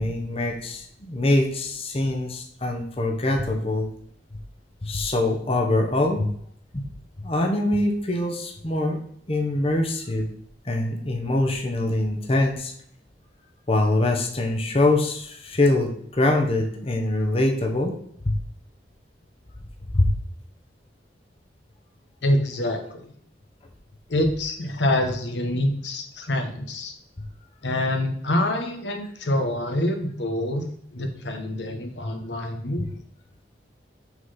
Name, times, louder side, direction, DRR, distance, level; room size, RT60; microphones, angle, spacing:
voice 1, 0.0-3.9 4.8-6.3 6.7-6.8 7.2-9.0 9.3-10.3 10.6-12.7 13.7-17.9 18.2-18.3 19.9-20.1, left 2 dB, 35° left, 2 dB, 1.0 m, -23 dB
voice 2, 22.2-23.1 24.1-26.9 27.6-30.6 30.9-32.9, left 1 dB, 80° left, 4 dB, 1.1 m, -26 dB
6.0 x 3.9 x 5.6 m, 0.63 s
head